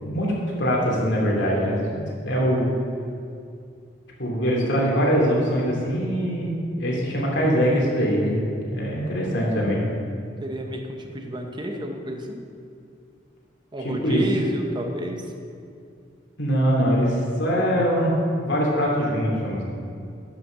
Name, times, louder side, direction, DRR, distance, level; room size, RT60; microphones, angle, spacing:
voice 1, 0.0-2.0 2.2-2.7 4.2-8.4 8.7-9.8 13.8-14.2 16.4-18.1 18.4-19.6, equal, 70° left, -4 dB, 2.6 m, -22 dB
voice 2, 10.4-12.4 13.7-15.3, equal, 25° right, 3 dB, 1.0 m, -31 dB
10.5 x 5.9 x 6.3 m, 2.4 s
head